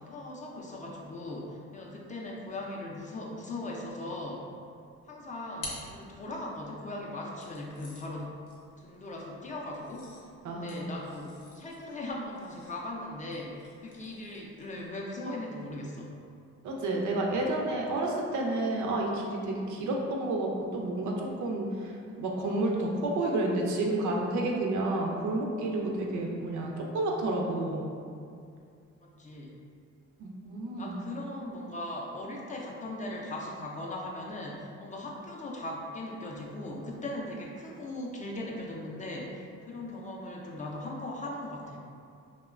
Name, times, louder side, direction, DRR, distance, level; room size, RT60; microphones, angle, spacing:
voice 1, 0.0-4.4 5.1-8.3 8.8-10.1 10.5-16.1 29.0-29.6 30.8-41.8, left 1 dB, 25° left, -2 dB, 0.4 m, -39 dB
sound 1, 4.9-6.7 7.4-15.0, left 2 dB, 85° left, 0.7 m, -50 dB
voice 2, 10.4-10.8 16.6-27.9 30.2-31.0, right 2 dB, 70° right, -1 dB, 0.5 m, -30 dB
2.9 x 2.1 x 2.3 m, 2.4 s
cardioid pair, 90°, 30 cm